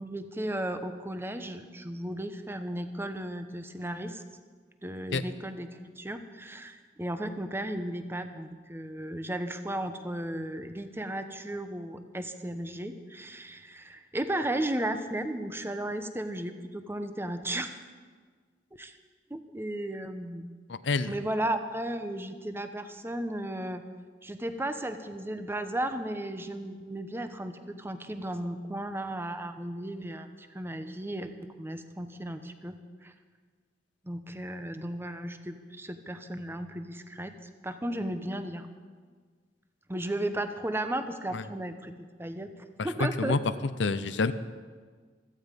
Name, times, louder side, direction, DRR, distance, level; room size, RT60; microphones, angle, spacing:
voice 1, 0.0-4.2 4.8-17.8 18.8-18.9 19.3-20.5 21.1-23.8 24.2-31.3 31.6-32.7 33.0-33.1 34.0-37.3 37.6-38.7 39.9-41.9 42.2-42.5 42.8-43.4, right 1 dB, 15° right, 9 dB, 0.9 m, -35 dB
voice 2, 20.7-21.1 41.3-41.4 43.0-43.4 43.8-44.3, left 3 dB, 85° left, 12 dB, 0.6 m, -27 dB
16.0 x 14.5 x 5.3 m, 1.6 s
head